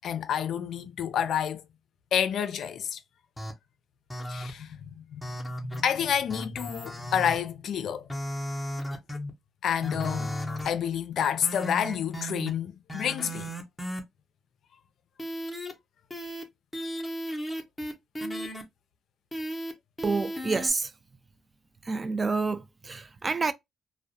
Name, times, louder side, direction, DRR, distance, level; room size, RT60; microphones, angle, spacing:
voice 1, 0.0-1.6 2.1-3.0 4.3-5.4 5.8-8.1 9.6-10.3 10.6-13.5, left 8 dB, 70° left, 0.4 m, -29 dB
sound 1, 3.4-3.5 4.1-4.5 5.2-5.8 6.3-7.4 8.1-9.3 9.8-10.7 11.4-12.5 12.9-14.0 15.2-15.7 16.1-16.4 16.7-18.6 19.3-19.7 20.0-20.7, equal, 10° left, 0.6 m, -35 dB
voice 2, 20.0-20.9 21.8-23.5, right 4 dB, 30° right, 0.3 m, -28 dB
2.3 x 2.0 x 2.6 m
cardioid pair, 90°, 0 cm